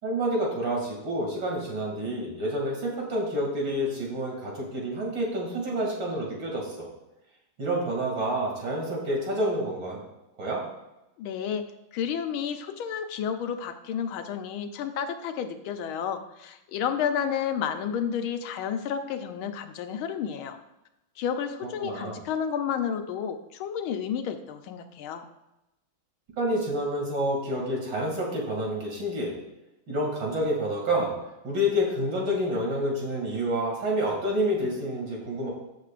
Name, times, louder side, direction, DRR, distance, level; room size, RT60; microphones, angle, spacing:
voice 1, 0.0-6.9 7.6-10.0 10.4-10.6 21.8-22.2 26.4-29.3 29.9-31.1 31.4-35.5, equal, 65° right, -2 dB, 3.2 m, -28 dB
voice 2, 11.2-20.6 21.2-25.3, left 8 dB, 85° left, 7 dB, 1.6 m, -31 dB
15.5 x 6.5 x 2.5 m, 0.93 s
omnidirectional pair, 2.2 m